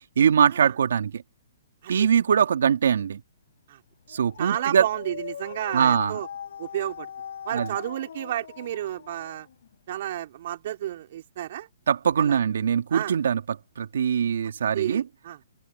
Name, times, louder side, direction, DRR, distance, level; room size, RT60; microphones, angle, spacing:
voice 1, 0.2-1.2 1.9-3.2 4.1-4.8 5.7-6.2 7.5-7.7 11.9-13.4 13.8-15.0, right 7 dB, 75° right, 2.5 m, -22 dB
Dog, 4.1-9.7, left 8 dB, 70° left, 3.9 m, -40 dB
voice 2, 4.4-6.3 6.6-7.1 7.5-9.5 9.9-11.7 12.2-12.4 12.9-13.1 14.7-15.4, right 12 dB, 55° right, 3.6 m, -31 dB
open air
hypercardioid pair, 150°, 0 cm